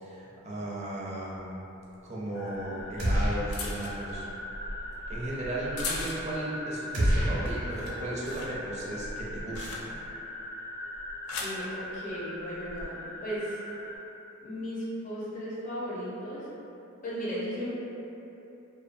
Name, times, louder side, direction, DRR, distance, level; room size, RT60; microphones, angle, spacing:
voice 1, 0.0-1.6 2.0-4.3 5.1-9.8, right 1 dB, 35° right, -5 dB, 0.5 m, -36 dB
sound 1, 1.3-1.4 2.6-6.6 7.0-7.3 7.6-10.2 10.9-11.6 12.5-12.8, left 2 dB, 75° left, 0.4 m, -38 dB
sound 2, 2.3-14.0, left 1 dB, 60° left, 1.0 m, -41 dB
sound 3, 3.0-3.9 4.2-4.3 6.9-8.2, equal, 80° right, 0.7 m, -28 dB
voice 2, 11.4-13.6 14.4-16.5 17.0-17.7, equal, 40° left, -9 dB, 0.6 m, -36 dB
2.6 x 2.3 x 2.5 m, 3.0 s
head